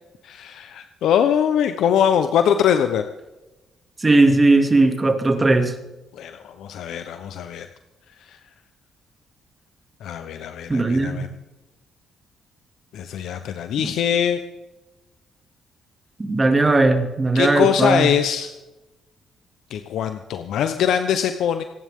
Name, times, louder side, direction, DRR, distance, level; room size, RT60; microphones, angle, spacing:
voice 1, 0.2-3.0 6.1-7.7 8.3-8.4 10.0-11.3 12.9-14.4 17.3-18.5 19.7-21.6, left 8 dB, 80° left, 8 dB, 0.9 m, -22 dB
voice 2, 4.0-5.7 10.7-11.3 13.8-13.9 16.2-18.1, right 2 dB, 25° right, 6 dB, 2.5 m, -18 dB
25.5 x 11.0 x 3.7 m, 1.0 s
cardioid pair, 90°, 0 cm